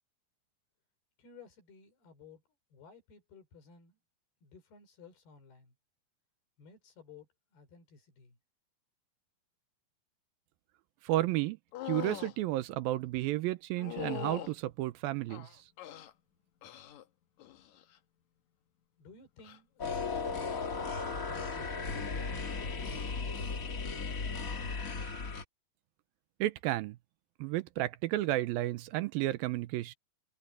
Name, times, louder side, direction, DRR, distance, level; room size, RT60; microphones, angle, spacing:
voice 1, 1.2-2.4 2.7-4.0 4.4-5.7 6.6-8.4 19.0-23.1, left 6 dB, 85° left, 6.8 m, -56 dB
voice 2, 11.0-11.6 11.9-15.5 26.4-27.0 27.4-29.9, right 16 dB, 80° right, 2.4 m, -32 dB
sound 1, 11.7-12.4 13.8-14.5 15.3-16.1 16.6-17.0 17.4-17.8 19.4-19.6, left 13 dB, 65° left, 2.1 m, -41 dB
sound 2, 19.8-25.4, left 4 dB, 45° left, 1.0 m, -36 dB
omnidirectional pair, 4.4 m